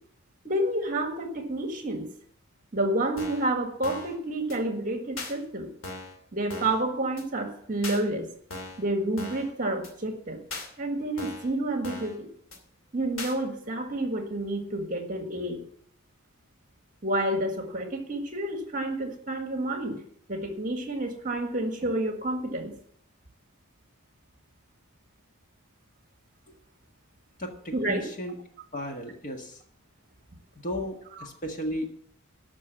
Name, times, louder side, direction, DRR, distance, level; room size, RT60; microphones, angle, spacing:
voice 1, 0.4-2.1 2.7-5.7 6.3-8.3 8.8-10.4 10.8-12.3 12.9-15.6 17.0-20.0 20.3-22.7 27.7-28.1, right 1 dB, 40° right, 6 dB, 1.8 m, -29 dB
sound 1, 3.2-3.5 3.8-4.2 4.5-4.6 5.2-5.3 5.8-6.2 6.5-6.8 7.2-7.3 7.8-8.0 8.5-8.8 9.2-9.5 9.8-9.9 10.5-10.7 11.2-11.5 11.8-12.2 12.5-12.6 13.2-13.3, left 2 dB, 70° left, 2.6 m, -38 dB
voice 2, 27.4-28.3 28.7-29.6 30.6-31.9, equal, 35° left, 4 dB, 1.6 m, -34 dB
13.0 x 6.2 x 7.3 m, 0.63 s
head